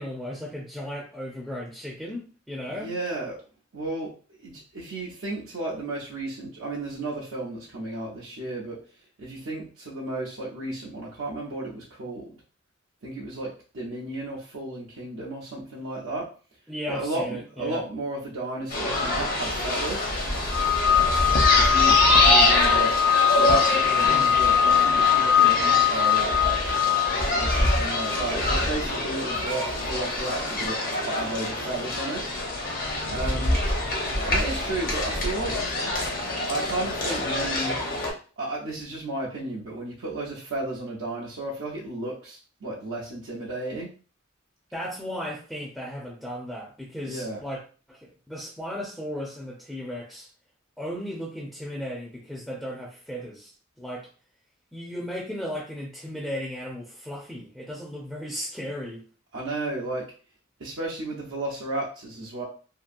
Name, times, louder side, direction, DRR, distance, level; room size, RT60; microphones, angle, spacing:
voice 1, 0.0-2.9 16.7-17.8 24.0-24.3 44.7-47.6 47.9-50.3 50.8-53.5 53.8-54.1 54.7-59.0, equal, ahead, -3 dB, 0.5 m, -35 dB
voice 2, 2.7-3.4 3.7-4.1 4.4-8.8 9.2-12.3 13.0-16.3 16.9-20.1 21.5-22.9 23.4-26.7 27.3-30.8 31.0-32.2 33.1-33.6 34.2-35.6 36.5-37.8 38.4-43.9 47.1-47.4 59.3-60.1 60.6-62.4, right 2 dB, 70° right, -5 dB, 0.6 m, -33 dB
sound 1, 18.7-38.1, left 1 dB, 45° left, 0.8 m, -25 dB
sound 2, 20.5-28.3, left 9 dB, 70° left, 0.4 m, -22 dB
2.8 x 2.4 x 2.5 m, 0.38 s
head